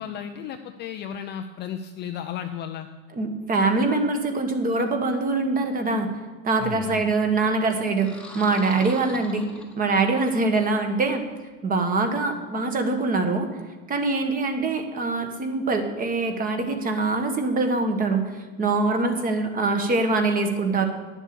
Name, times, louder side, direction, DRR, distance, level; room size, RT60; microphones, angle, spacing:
voice 1, 0.0-2.9 6.6-7.0, left 9 dB, 25° left, 6 dB, 0.5 m, -34 dB
voice 2, 3.1-6.1 6.4-9.5 9.8-11.2 11.6-13.5 13.9-20.8, right 3 dB, 20° right, 6 dB, 1.3 m, -24 dB
sound 1, 7.9-10.2, left 2 dB, 5° left, 1.1 m, -42 dB
10.5 x 7.3 x 6.8 m, 1.4 s
supercardioid pair, 135°, 40 cm